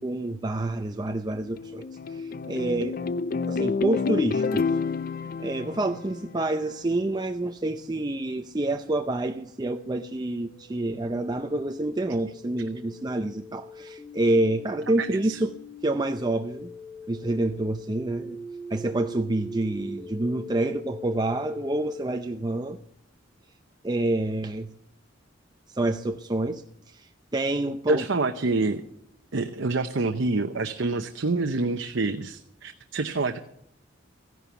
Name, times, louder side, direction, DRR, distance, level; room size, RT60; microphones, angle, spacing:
voice 1, 0.0-3.0 3.5-4.8 5.4-15.6 15.8-16.7 17.1-18.4 18.7-22.8 23.8-24.7 25.7-28.0, right 2 dB, 20° right, 6 dB, 0.5 m, -28 dB
sound 1, 1.1-6.7, left 4 dB, 45° left, 0.5 m, -29 dB
sound 2, 8.8-22.0, left 1 dB, 15° left, 2.2 m, -42 dB
voice 2, 15.0-15.4 27.9-28.8 29.3-33.4, right 3 dB, 70° right, 7 dB, 0.8 m, -27 dB
16.0 x 11.0 x 7.0 m, 0.71 s
head